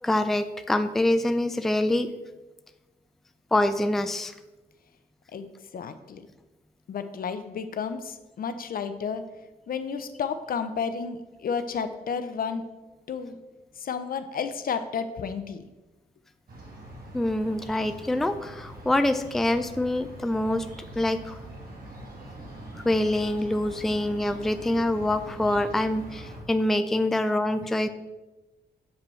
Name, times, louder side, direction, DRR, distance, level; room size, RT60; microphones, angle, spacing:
voice 1, 0.0-2.1 3.5-4.3 17.1-20.7 21.0-21.4 22.7-27.9, left 1 dB, ahead, 10 dB, 0.3 m, -25 dB
voice 2, 5.3-6.2 6.9-9.2 9.7-12.6 13.1-13.4 13.8-15.6, left 6 dB, 60° left, 10 dB, 0.5 m, -32 dB
sound 1, 16.5-26.4, right 1 dB, 60° right, 1.7 m, -43 dB
7.0 x 5.1 x 3.2 m, 1.1 s
cardioid pair, 65°, 17 cm